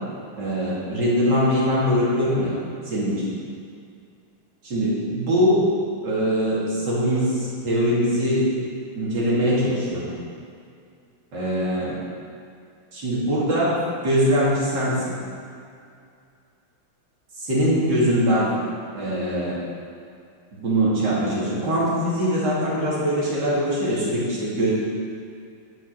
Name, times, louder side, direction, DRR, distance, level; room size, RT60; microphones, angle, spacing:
voice 1, 0.4-2.6 2.8-3.3 4.6-5.7 6.0-8.5 8.9-10.1 11.3-12.0 12.9-15.1 17.4-18.5 18.9-19.6 20.6-24.7, equal, 55° right, -7 dB, 3.3 m, -22 dB
11.0 x 6.4 x 6.0 m, 2.3 s
omnidirectional pair, 2.3 m